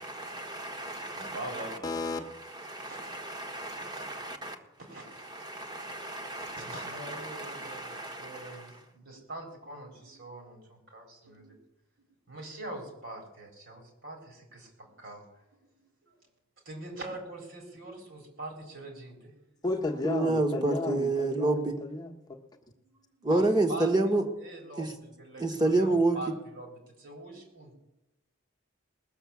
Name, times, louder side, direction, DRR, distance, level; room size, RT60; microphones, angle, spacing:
voice 1, 0.0-1.8 2.3-4.5 5.2-8.8 20.0-21.8 23.2-24.2 24.8-24.9 25.4-26.3, right 2 dB, 20° right, 1.5 m, -30 dB
voice 2, 1.1-2.0 2.8-3.2 3.8-4.0 4.8-5.3 6.3-8.7 8.9-11.5 12.0-15.2 15.5-16.1 16.6-19.3 22.9-23.9 24.4-27.7, right 2 dB, 60° right, 4.3 m, -44 dB
voice 3, 1.8-2.2 19.6-22.4, left 2 dB, 20° left, 1.1 m, -33 dB
20.0 x 7.2 x 7.2 m
head